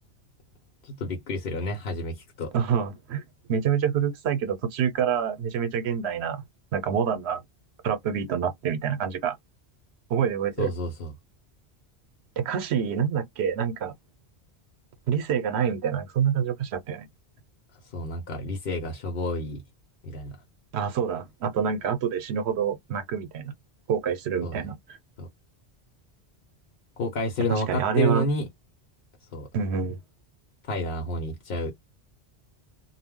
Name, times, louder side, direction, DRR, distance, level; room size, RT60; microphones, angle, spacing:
voice 1, 0.8-2.5 10.6-11.1 17.9-19.6 20.0-20.4 24.4-24.7 25.2-25.3 27.0-28.4 29.3-29.5 30.7-31.7, left 1 dB, 65° left, 0.9 m, -30 dB
voice 2, 2.5-3.2 3.5-6.4 6.7-7.4 7.8-9.4 10.1-10.7 12.4-13.9 15.1-17.1 20.7-23.5 23.9-24.8 27.5-28.3 29.5-30.0, right 7 dB, 80° right, 0.9 m, -26 dB
2.3 x 2.0 x 3.5 m
omnidirectional pair, 1.1 m